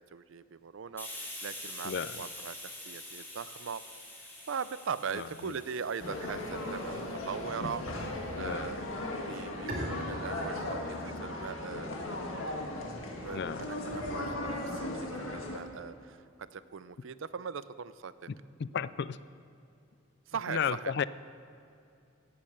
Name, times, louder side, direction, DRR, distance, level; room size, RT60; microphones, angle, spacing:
voice 1, 0.0-3.8 4.5-7.8 8.4-8.8 9.3-11.9 13.2-18.1 20.3-20.9, right 6 dB, 70° right, 15 dB, 0.5 m, -40 dB
Hiss, 1.0-8.4, left 1 dB, 10° left, 3.1 m, -46 dB
voice 2, 1.8-2.2 5.1-5.6 8.4-8.8 13.3-13.7 18.3-19.2 20.5-21.0, left 7 dB, 55° left, 17 dB, 0.4 m, -34 dB
sound 1, 6.0-15.6, left 1 dB, 75° left, 1.8 m, -37 dB
Bowed string instrument, 9.7-15.3, equal, 45° right, 2.1 m, -45 dB
17.0 x 8.7 x 6.6 m, 2.5 s
head